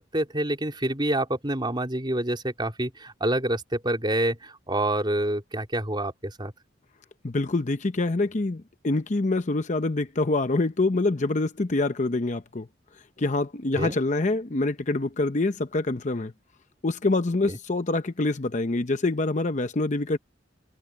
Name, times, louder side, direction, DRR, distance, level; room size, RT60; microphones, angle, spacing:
voice 1, 0.1-6.5 13.8-14.0 17.5-17.6, right 1 dB, 25° right, 3.7 m, -27 dB
voice 2, 7.2-12.7 13.2-16.3 16.8-20.2, left 2 dB, 40° left, 0.8 m, -25 dB
head